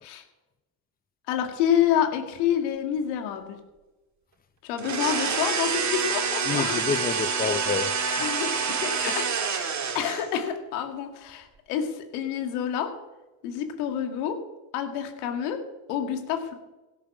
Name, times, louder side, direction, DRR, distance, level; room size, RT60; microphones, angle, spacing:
voice 1, 1.3-3.6 4.6-6.8 8.2-12.9 13.4-14.4 14.7-15.6 15.9-16.5, left 9 dB, 85° left, 2.1 m, -28 dB
sound 1, 4.8-10.4, right 6 dB, 40° right, 2.0 m, -27 dB
voice 2, 6.4-8.3 9.0-9.2, left 6 dB, 20° left, 0.8 m, -29 dB
16.5 x 8.8 x 6.0 m
supercardioid pair, 75°, 44 cm